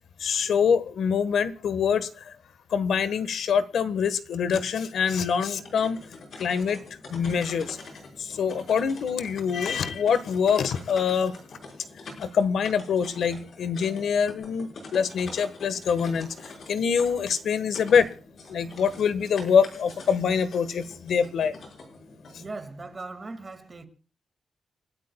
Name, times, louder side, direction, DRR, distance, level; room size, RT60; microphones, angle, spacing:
voice 1, 0.2-2.3 2.7-6.0 6.4-6.8 7.1-7.8 8.2-11.4 12.2-18.1 18.5-21.5, left 6 dB, 75° left, 1.3 m, -25 dB
sound 1, 5.5-22.5, left 3 dB, 55° left, 5.2 m, -45 dB
voice 2, 22.4-23.9, right 3 dB, 25° right, 2.1 m, -39 dB
29.5 x 12.5 x 2.3 m
wide cardioid pair, 165°, 0 cm